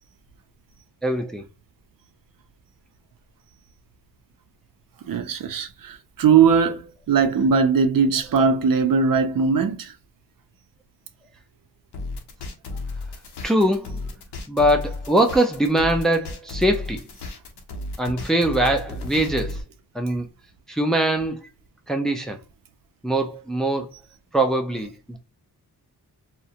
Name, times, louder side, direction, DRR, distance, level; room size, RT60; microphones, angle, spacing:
voice 1, 1.0-1.4 13.4-14.0 14.5-17.0 18.0-19.6 19.9-20.3 20.7-21.4 21.9-22.4 23.0-23.9 24.3-25.2, right 1 dB, ahead, 0.3 m, -22 dB
voice 2, 5.0-9.9, right 6 dB, 60° right, 0.5 m, -20 dB
sound 1, 11.9-19.6, left 2 dB, 85° left, 0.6 m, -33 dB
2.4 x 2.1 x 2.7 m
wide cardioid pair, 130°, 39 cm